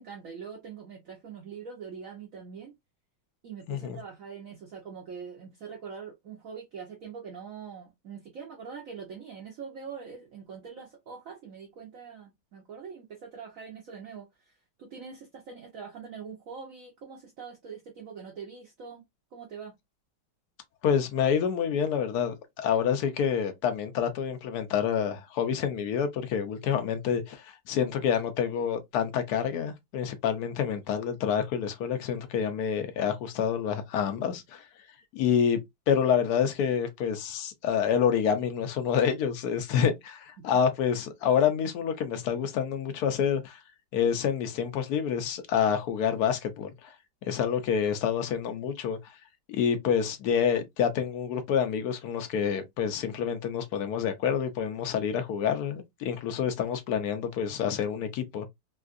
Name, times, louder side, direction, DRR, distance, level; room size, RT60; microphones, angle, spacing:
voice 1, 0.0-2.7 3.4-14.5 14.8-19.0 19.3-19.7, right 6 dB, 60° right, 0.9 m, -43 dB
voice 2, 20.8-34.6 35.1-35.6 35.9-43.6 43.9-46.7 47.3-49.0 49.5-58.5, left 7 dB, 65° left, 1.1 m, -27 dB
3.6 x 2.4 x 2.4 m
omnidirectional pair, 2.0 m